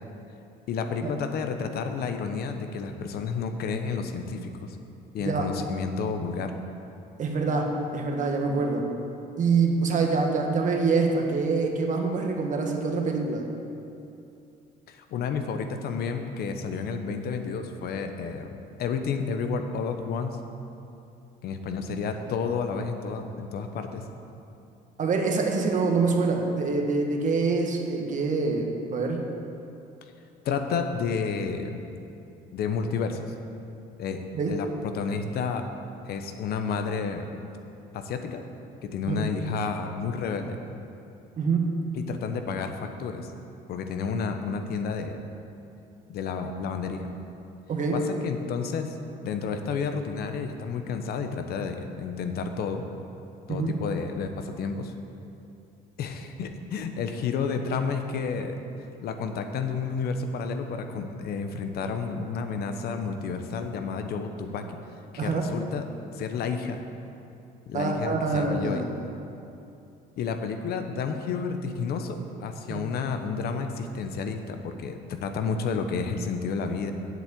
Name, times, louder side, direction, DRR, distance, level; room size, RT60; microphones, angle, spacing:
voice 1, 0.7-4.8 5.1-6.5 14.9-20.4 21.4-24.0 30.4-31.8 32.5-33.3 34.0-35.7 36.1-37.3 37.9-38.4 38.8-40.6 41.9-43.3 43.7-45.2 46.1-47.1 47.9-49.0 49.2-52.8 53.5-54.9 56.0-58.6 59.0-64.6 65.1-65.9 66.1-66.8 67.7-68.9 70.2-76.9, left 5 dB, 70° left, 6 dB, 1.0 m, -31 dB
voice 2, 7.2-8.9 9.4-13.5 25.0-29.2 34.3-34.6 39.1-39.2 41.4-41.7 47.7-48.0 53.5-53.8 65.2-65.5 67.7-69.1 72.7-72.8, right 4 dB, 50° right, 2 dB, 1.6 m, -25 dB
8.2 x 7.4 x 8.3 m, 2.8 s
cardioid pair, 110°, 17 cm